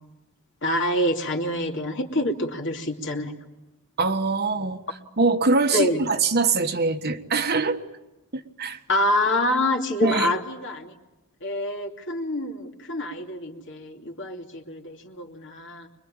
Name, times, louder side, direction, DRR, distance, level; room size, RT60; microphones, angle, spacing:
voice 1, 0.6-3.3 5.7-6.0 8.9-10.9 11.4-15.9, left 1 dB, 55° left, 2.8 m, -26 dB
voice 2, 4.0-4.8 5.2-7.8 8.3-8.8 10.0-10.3, right 3 dB, 45° right, 1.4 m, -23 dB
25.0 x 22.5 x 8.9 m
head